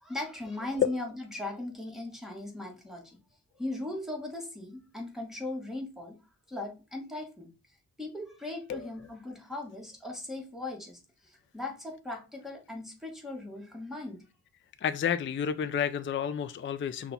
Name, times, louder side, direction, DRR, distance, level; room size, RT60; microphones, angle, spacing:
voice 1, 0.0-3.2 3.6-6.2 6.5-7.5 8.0-14.2, left 2 dB, ahead, 1.4 m, -38 dB
voice 2, 14.8-17.1, left 8 dB, 35° left, 0.4 m, -31 dB
5.7 x 2.3 x 4.0 m
cardioid pair, 75°, 37 cm